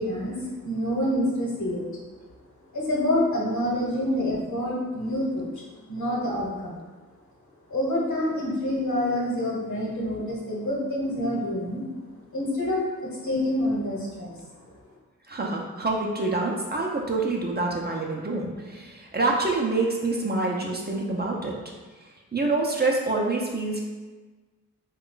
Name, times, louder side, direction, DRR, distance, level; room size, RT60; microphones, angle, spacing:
voice 1, 0.0-1.9 2.7-6.8 7.7-11.8 12.3-14.4, left 1 dB, 60° left, -4 dB, 1.1 m, -27 dB
voice 2, 15.3-21.6 22.3-23.8, right 3 dB, 30° right, -1 dB, 0.6 m, -26 dB
3.0 x 2.3 x 3.8 m, 1.3 s
cardioid pair, 50°, 34 cm